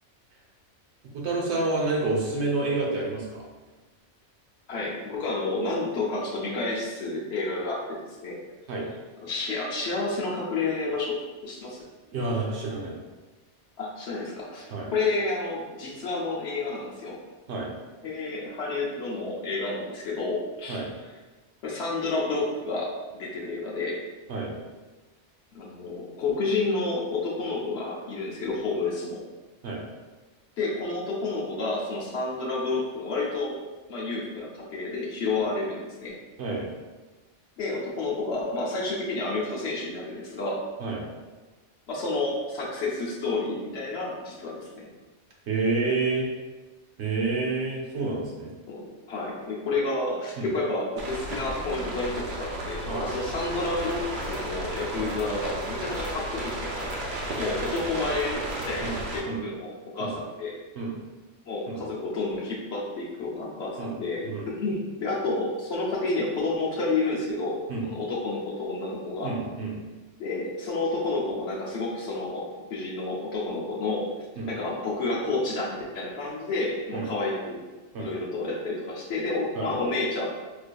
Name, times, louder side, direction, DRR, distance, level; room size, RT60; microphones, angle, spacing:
voice 1, 1.1-3.4 8.7-8.9 12.1-13.0 14.7-14.9 17.5-17.7 20.7-20.9 24.3-24.5 29.6-29.8 36.4-36.7 40.8-41.0 45.5-46.3 47.0-48.5 50.4-50.5 52.9-53.1 54.9-55.1 58.8-58.9 59.3-59.4 60.0-60.1 60.7-60.9 61.7-61.9 63.8-64.0 64.2-64.5 67.7-67.9 69.2-69.8 74.4-74.5 76.9-77.1 77.9-78.1 79.5-79.7, right 3 dB, 70° right, -2 dB, 1.0 m, -29 dB
voice 2, 4.7-8.0 8.2-8.4 9.2-11.8 13.8-17.2 18.0-20.8 21.6-24.0 25.5-29.2 30.6-33.6 33.9-36.1 37.6-40.6 41.9-44.9 48.7-54.0 54.3-57.1 57.4-60.6 61.5-67.6 67.9-69.3 70.2-72.4 72.7-74.1 74.4-77.6 78.0-80.3, left 3 dB, 65° left, -4 dB, 0.9 m, -30 dB
sound 1, 51.0-59.2, right 1 dB, 55° right, 0.6 m, -34 dB
sound 2, 53.7-58.8, equal, 40° left, 1.0 m, -42 dB
4.6 x 2.5 x 2.2 m, 1.2 s
omnidirectional pair, 1.2 m